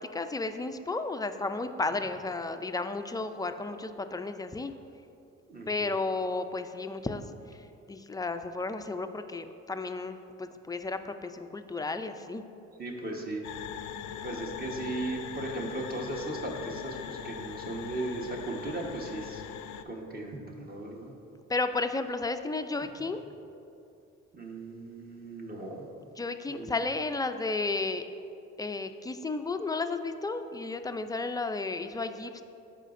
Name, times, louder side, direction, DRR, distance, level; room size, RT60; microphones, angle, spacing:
voice 1, 0.0-4.7 5.7-7.2 7.9-12.4 21.5-23.2 26.2-28.0 28.6-32.4, left 3 dB, 15° left, 8 dB, 0.3 m, -33 dB
voice 2, 5.5-5.9 12.8-13.4 14.2-19.4 19.8-21.1 24.3-25.9 26.5-26.7, right 2 dB, 30° right, 0 dB, 1.2 m, -37 dB
sound 1, 13.4-19.8, left 9 dB, 80° left, 0.4 m, -40 dB
13.0 x 5.0 x 2.6 m, 2.6 s
cardioid pair, 90°, 30 cm